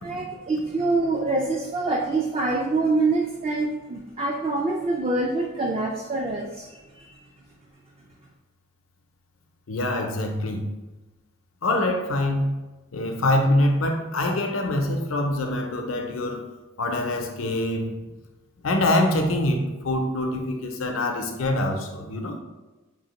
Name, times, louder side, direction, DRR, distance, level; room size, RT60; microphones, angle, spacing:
voice 1, 0.0-7.2, right 3 dB, 30° right, 0 dB, 0.4 m, -25 dB
voice 2, 9.7-10.7 11.6-12.5 12.9-16.5 16.8-17.9 18.6-22.4, left 1 dB, 75° left, 3 dB, 0.6 m, -24 dB
5.3 x 2.7 x 3.0 m, 1.2 s
head